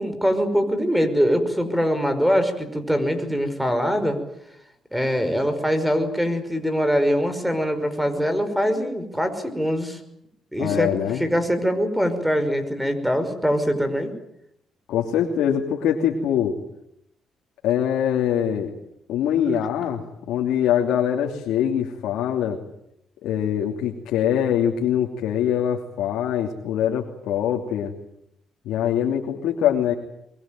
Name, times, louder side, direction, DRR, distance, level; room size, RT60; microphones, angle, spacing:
voice 1, 0.0-4.2 4.9-10.0 10.5-14.1, equal, ahead, 9 dB, 5.6 m, -23 dB
voice 2, 10.6-11.2 14.9-16.6 17.6-18.7 19.1-20.0 20.3-22.6 23.2-27.9 28.6-29.9, left 9 dB, 85° left, 1 dB, 3.0 m, -23 dB
23.0 x 23.0 x 9.2 m, 0.77 s
cardioid pair, 90°, 0 cm